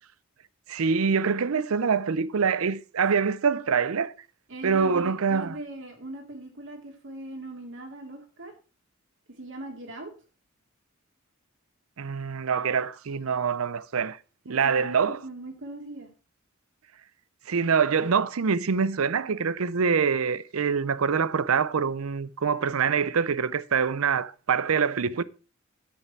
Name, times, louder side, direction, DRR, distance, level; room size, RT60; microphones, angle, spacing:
voice 1, 0.7-4.1 4.6-5.6 12.0-14.2 14.5-15.2 17.5-25.2, right 6 dB, 80° right, 0.6 m, -25 dB
voice 2, 4.5-8.5 9.3-10.1 14.5-16.1, right 1 dB, 60° right, 2.9 m, -40 dB
9.3 x 8.3 x 4.5 m
head